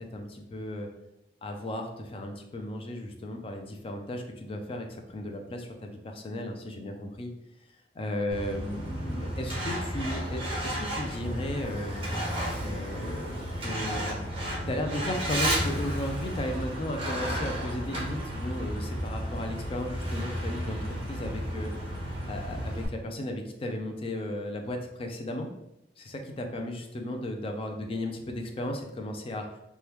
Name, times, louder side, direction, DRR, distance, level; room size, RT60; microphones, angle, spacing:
voice 1, 0.1-0.9 1.4-7.3 8.0-12.0 12.6-14.3 14.7-21.7 22.3-25.5 26.0-29.6, left 1 dB, 30° left, 3 dB, 0.4 m, -35 dB
Truck, 8.3-22.9, equal, 35° right, 0.8 m, -33 dB
2.9 x 2.2 x 3.4 m, 0.88 s
head